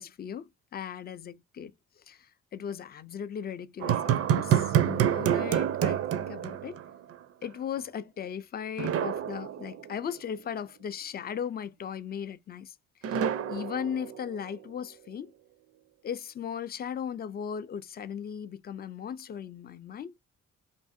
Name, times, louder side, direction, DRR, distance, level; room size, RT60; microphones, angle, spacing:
voice 1, 0.0-6.8 7.4-12.8 13.0-15.3 16.0-20.1, left 8 dB, 35° left, 0.4 m, -37 dB
sound 1, 3.8-7.2 7.4-7.5 8.8-10.2 13.0-14.6, right 10 dB, 50° right, 0.4 m, -28 dB
2.6 x 2.5 x 2.5 m
cardioid pair, 90°, 30 cm